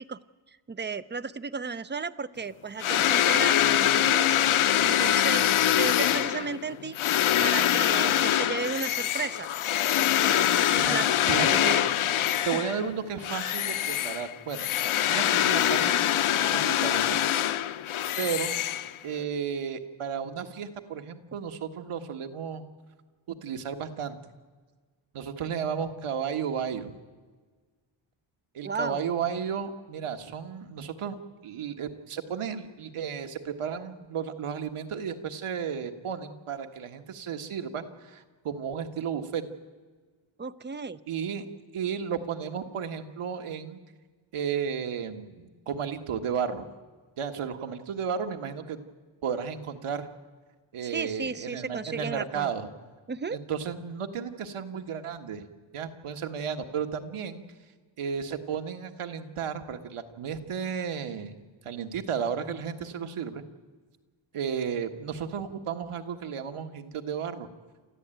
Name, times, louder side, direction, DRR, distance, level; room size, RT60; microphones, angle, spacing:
voice 1, 0.7-4.3 4.8-7.0 7.4-9.5 10.2-10.5 10.9-11.2 11.5-11.7 12.5-12.6 28.6-29.0 40.4-41.0 50.8-52.5 53.1-53.4, right 5 dB, 20° right, 14 dB, 0.6 m, -34 dB
sound 1, 2.8-12.9 13.2-19.2, left 11 dB, 75° left, 0.9 m, -24 dB
voice 2, 11.3-11.8 12.5-14.7 15.1-16.0 16.3-17.3 18.2-18.5 19.0-22.6 23.3-24.2 25.1-27.0 28.5-31.2 31.4-39.4 41.1-41.5 41.7-43.8 44.3-46.7 47.2-48.8 49.2-50.1 50.7-52.7 53.3-55.5 55.7-57.4 58.0-61.4 61.7-63.4 64.3-67.5, right 7 dB, 85° right, 6 dB, 1.7 m, -33 dB
28.5 x 13.5 x 9.1 m, 1.4 s
wide cardioid pair, 140°, 49 cm